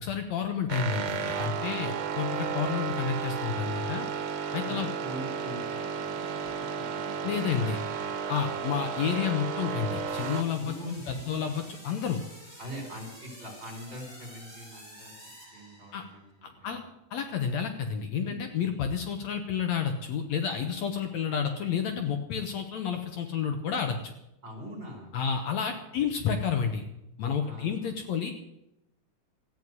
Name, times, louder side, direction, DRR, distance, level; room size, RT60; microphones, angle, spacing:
voice 1, 0.0-4.1 4.5-4.9 7.2-7.8 8.3-10.8 11.1-12.2 15.9-16.0 16.4-16.8 17.1-24.1 25.1-26.9 27.2-28.3, left 7 dB, 65° left, 6 dB, 2.4 m, -30 dB
sound 1, 0.7-10.4, right 6 dB, 80° right, 2.6 m, -33 dB
voice 2, 4.6-6.3 6.7-8.1 8.4-8.6 10.5-11.5 12.6-15.1 15.5-16.9 18.2-18.4 24.4-25.1 25.9-26.3 27.4-28.0, equal, 20° right, 0 dB, 5.2 m, -43 dB
sound 2, 10.1-16.3, equal, 15° left, 6.2 m, -50 dB
14.5 x 9.3 x 9.5 m, 0.85 s
omnidirectional pair, 3.5 m